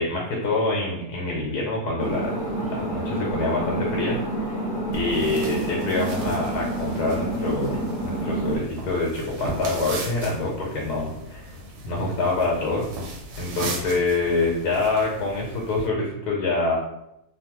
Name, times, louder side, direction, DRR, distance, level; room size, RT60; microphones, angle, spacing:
voice 1, 0.0-11.5 11.8-16.8, left 2 dB, 80° left, -2 dB, 1.2 m, -26 dB
sound 1, 2.0-8.6, right 1 dB, 65° left, 0.6 m, -28 dB
sound 2, 4.9-15.9, right 1 dB, 90° right, 1.2 m, -37 dB
2.9 x 2.1 x 3.0 m, 0.80 s
omnidirectional pair, 1.7 m